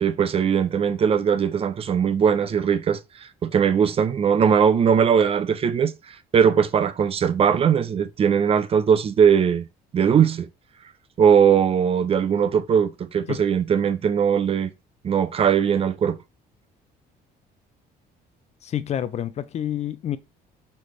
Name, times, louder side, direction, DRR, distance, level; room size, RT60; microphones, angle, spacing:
voice 1, 0.0-3.0 3.4-5.9 6.3-9.7 9.9-10.5 11.2-14.7 15.0-16.2, right 7 dB, 35° right, 0.4 m, -20 dB
voice 2, 18.6-20.2, left 10 dB, 40° left, 0.4 m, -28 dB
4.2 x 3.2 x 3.1 m
cardioid pair, 110°, 17 cm